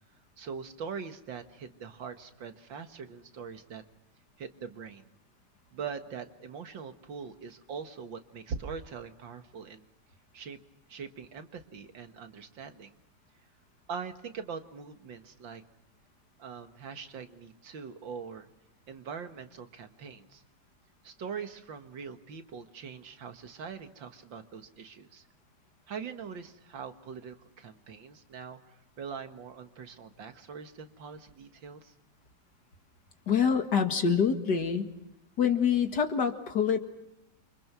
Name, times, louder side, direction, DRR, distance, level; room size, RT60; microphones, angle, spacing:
voice 1, 0.4-3.8 4.4-5.1 5.7-9.9 10.3-10.6 10.9-12.9 13.9-15.6 16.4-18.5 18.9-20.4 21.0-25.2 25.9-31.9, right 6 dB, 80° right, 8 dB, 2.3 m, -42 dB
voice 2, 33.3-34.9 35.4-36.8, left 7 dB, 60° left, 6 dB, 2.5 m, -26 dB
28.5 x 25.0 x 6.2 m, 0.84 s
omnidirectional pair, 2.0 m